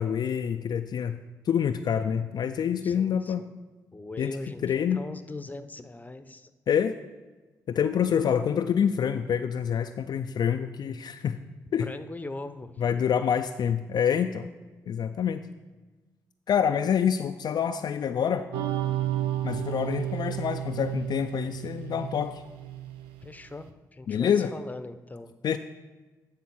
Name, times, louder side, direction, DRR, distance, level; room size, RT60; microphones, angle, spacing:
voice 1, 0.0-3.4 4.2-4.4 4.6-5.0 6.7-6.9 7.7-11.4 11.7-11.9 12.8-14.5 14.9-15.4 16.5-18.5 19.4-22.4 24.1-24.5 25.4-25.6, left 8 dB, 55° left, 7 dB, 0.4 m, -26 dB
voice 2, 2.8-3.5 3.9-6.5 11.8-12.8 23.2-25.6, left 2 dB, 20° left, 10 dB, 0.7 m, -40 dB
sound 1, 18.5-23.3, right 13 dB, 90° right, 0.4 m, -32 dB
11.0 x 3.6 x 6.1 m, 1.2 s
supercardioid pair, 50°, 8 cm